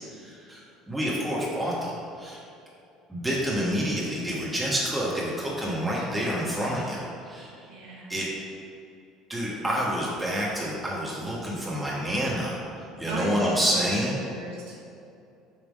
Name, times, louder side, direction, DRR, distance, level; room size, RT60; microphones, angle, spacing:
voice 1, 0.1-2.4 3.1-7.7 8.1-8.3 9.3-12.6 13.0-14.2, equal, 10° right, -6 dB, 1.3 m, -28 dB
voice 2, 7.7-8.1 13.1-14.7, right 2 dB, 65° right, -4 dB, 1.0 m, -36 dB
7.1 x 3.4 x 5.2 m, 2.6 s
figure-of-eight pair, 60°, 0 cm